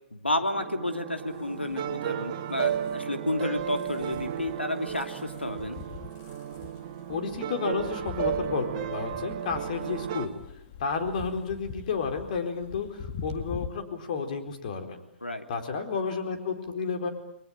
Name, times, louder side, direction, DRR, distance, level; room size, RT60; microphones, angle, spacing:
voice 1, 0.1-5.8 15.2-15.4, left 1 dB, 80° left, 5 dB, 3.0 m, -31 dB
sound 1, 0.5-10.3, right 10 dB, 35° right, 1.9 m, -34 dB
sound 2, 1.3-13.7, left 7 dB, 30° left, 1.9 m, -44 dB
voice 2, 7.1-10.3 10.8-15.0 15.5-17.1, left 5 dB, 50° left, 5 dB, 4.3 m, -31 dB
30.0 x 22.0 x 8.9 m, 0.79 s
figure-of-eight pair, 115°, 6 cm